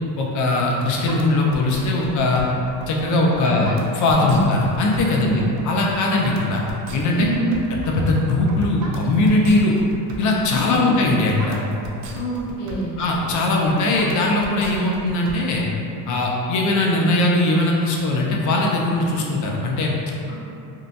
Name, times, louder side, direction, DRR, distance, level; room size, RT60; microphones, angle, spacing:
voice 1, 0.2-2.4 2.9-5.3 5.6-6.6 6.9-7.3 7.7-9.8 10.2-11.6 13.0-15.6 16.1-19.9, left 2 dB, 40° left, -1 dB, 0.4 m, -20 dB
sound 1, 1.1-15.3, right 2 dB, 70° right, 0.5 m, -37 dB
voice 2, 3.4-3.8 4.2-4.4 5.2-5.5 7.1-7.6 10.5-10.9 12.1-12.9, right 1 dB, 60° left, -6 dB, 0.9 m, -27 dB
2.7 x 2.2 x 2.5 m, 2.7 s
cardioid pair, 120°, 48 cm